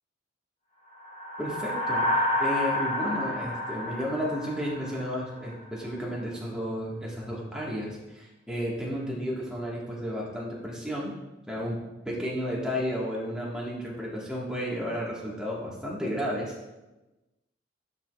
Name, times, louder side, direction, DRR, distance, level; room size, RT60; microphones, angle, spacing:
sound 1, 1.0-5.5, left 1 dB, 35° left, 1.0 m, -29 dB
voice 1, 1.4-11.1 11.5-11.8 12.0-16.5, equal, 5° right, -5 dB, 1.3 m, -32 dB
11.0 x 4.8 x 2.3 m, 1.0 s
head